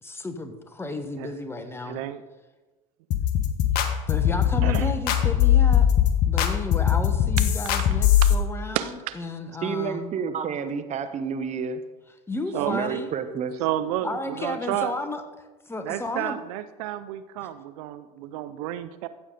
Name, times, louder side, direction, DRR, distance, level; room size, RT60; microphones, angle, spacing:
voice 1, 0.0-2.0 4.1-5.9 6.3-10.1 12.3-13.1 14.0-15.2 15.7-16.4 17.4-17.5, left 2 dB, 10° left, 8 dB, 1.3 m, -33 dB
voice 2, 1.8-2.2 4.6-4.9 8.2-8.3 8.7-9.2 12.5-12.8 13.6-14.9 15.8-19.1, right 13 dB, 65° right, 12 dB, 0.6 m, -31 dB
sound 1, 3.1-8.3, left 10 dB, 55° left, 1.2 m, -20 dB
voice 3, 9.6-11.8 12.5-13.6 14.1-14.2, right 6 dB, 35° right, 9 dB, 1.0 m, -30 dB
14.0 x 8.1 x 3.9 m, 1.2 s
hypercardioid pair, 80°, 19 cm